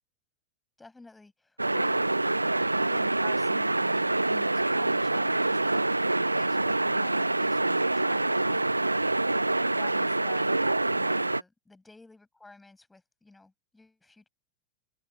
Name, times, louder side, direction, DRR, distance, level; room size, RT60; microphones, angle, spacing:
voice 1, 0.8-2.2 9.6-10.5 10.9-14.3, left 3 dB, 10° left, 7.8 m, -52 dB
sound 1, 1.6-11.4, right 2 dB, 85° right, 1.1 m, -26 dB
figure-of-eight pair, 90°, 0 cm